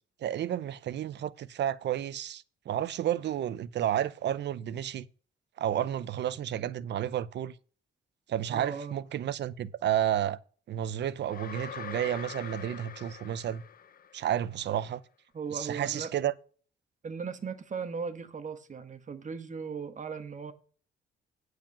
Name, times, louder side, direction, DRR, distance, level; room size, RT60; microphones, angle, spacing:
voice 1, 0.2-5.1 5.6-7.5 8.3-10.4 10.7-13.6 14.1-15.0 15.5-16.3, right 11 dB, 60° right, 0.7 m, -31 dB
voice 2, 8.5-9.0 15.3-16.1 17.0-20.5, right 5 dB, 40° right, 1.4 m, -37 dB
sound 1, 11.3-14.4, left 8 dB, 50° left, 0.8 m, -43 dB
9.1 x 4.8 x 7.3 m
cardioid pair, 90°, 20 cm